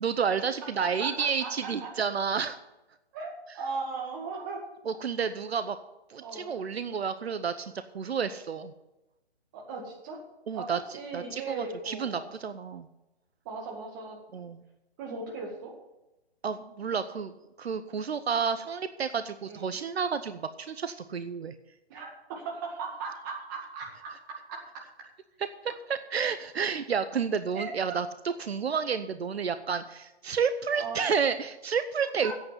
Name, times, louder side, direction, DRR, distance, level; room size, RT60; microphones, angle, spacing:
voice 1, 0.0-2.6 4.8-5.8 6.1-8.7 10.5-10.8 11.1-12.9 14.3-14.6 16.4-17.3 17.6-21.5 25.6-28.1 28.4-32.3, right 6 dB, 70° right, 11 dB, 0.8 m, -30 dB
voice 2, 0.8-1.9 3.1-4.6 6.2-6.5 9.5-10.2 10.5-12.3 13.5-14.2 15.0-15.8 19.5-19.7 21.9-24.1 24.5-24.6 27.5-28.0 30.8-31.0 32.2-32.3, right 4 dB, 20° right, -1 dB, 2.0 m, -38 dB
8.5 x 8.1 x 9.1 m, 0.98 s
hypercardioid pair, 165°, 33 cm